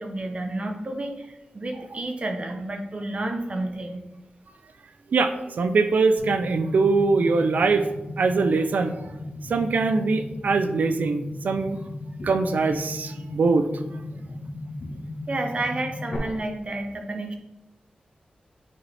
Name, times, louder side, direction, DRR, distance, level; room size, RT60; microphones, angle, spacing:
voice 1, 0.0-4.0 11.8-11.9 15.3-17.4, right 2 dB, 45° right, 4 dB, 0.9 m, -30 dB
voice 2, 5.1-7.9 8.2-8.9 9.5-11.8 12.2-13.7, right 4 dB, 75° right, 9 dB, 0.5 m, -22 dB
sound 1, 6.2-16.2, left 2 dB, 60° left, 1.4 m, -36 dB
8.5 x 4.0 x 3.4 m, 0.98 s
wide cardioid pair, 75°, 3 cm